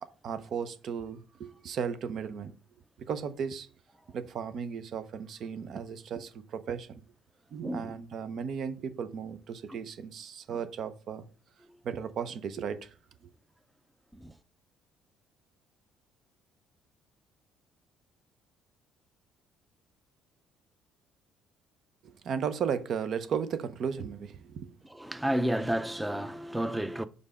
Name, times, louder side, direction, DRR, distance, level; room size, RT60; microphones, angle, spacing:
voice 1, 0.0-2.5 3.0-3.7 4.1-7.0 7.5-11.2 11.8-12.9 22.0-24.8, right 7 dB, 60° right, 0.7 m, -35 dB
voice 2, 24.9-27.1, right 1 dB, 10° right, 0.6 m, -31 dB
5.4 x 4.1 x 4.9 m
supercardioid pair, 70°, 0 cm